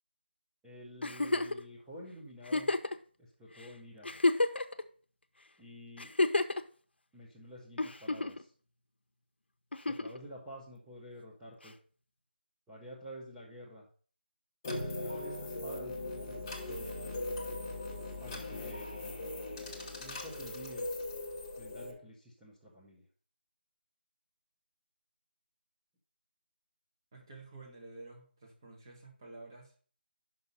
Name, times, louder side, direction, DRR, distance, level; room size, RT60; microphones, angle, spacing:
voice 1, 0.6-2.7 3.2-4.1 5.6-6.1 7.1-8.5 9.9-11.8 12.7-13.9 14.9-16.9 18.2-18.9 20.0-21.0 21.6-23.0, equal, 5° right, -8 dB, 0.5 m, -49 dB
Giggle, 1.0-1.6 2.5-3.0 3.6-3.7 4.0-4.8 6.0-6.6 7.8-8.4 9.7-10.2 11.7-11.8, left 2 dB, 80° left, 0.7 m, -30 dB
sound 1, 14.6-21.9, left 2 dB, 20° left, 1.0 m, -39 dB
voice 2, 27.1-29.9, right 3 dB, 25° right, -1 dB, 1.5 m, -51 dB
5.9 x 5.5 x 5.4 m, 0.43 s
figure-of-eight pair, 170°, 6 cm